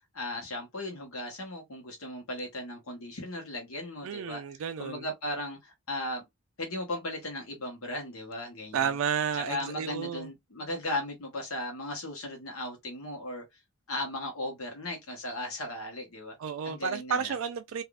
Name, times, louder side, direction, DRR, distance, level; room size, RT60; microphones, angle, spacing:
voice 1, 0.1-4.4 4.8-6.2 6.6-8.9 9.4-13.6 13.9-16.4 16.6-17.3, left 1 dB, 70° left, 1.0 m, -36 dB
voice 2, 4.0-5.1 8.7-10.3 16.4-17.8, right 7 dB, 65° right, 0.3 m, -31 dB
3.4 x 2.4 x 2.3 m
head